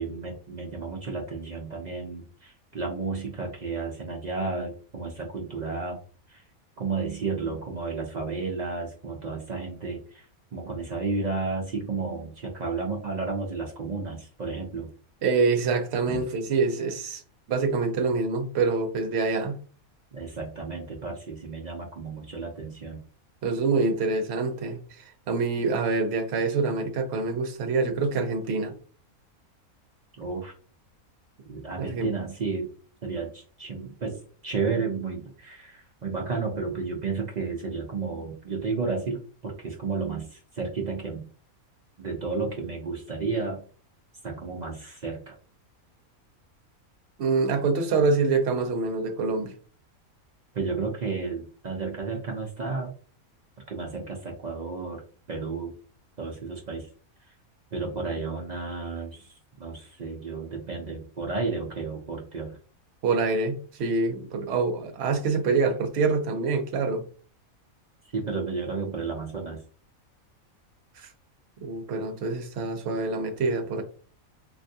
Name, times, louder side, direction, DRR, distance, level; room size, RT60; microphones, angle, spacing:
voice 1, 0.0-6.0 6.3-6.4 6.8-10.3 10.5-14.9 16.1-16.3 20.1-23.0 30.2-30.5 31.4-32.7 33.0-41.2 42.0-43.6 44.2-45.3 50.5-52.9 53.7-55.0 55.3-55.7 56.2-56.9 57.3-57.4 57.7-62.6 68.1-69.6, right 4 dB, 80° right, 0.4 m, -32 dB
voice 2, 15.2-17.2 17.5-19.6 23.4-28.7 31.8-32.1 47.2-49.5 63.0-67.0 71.0-71.1 71.6-73.8, right 4 dB, 60° right, 0.8 m, -26 dB
3.3 x 2.6 x 2.7 m
omnidirectional pair, 1.5 m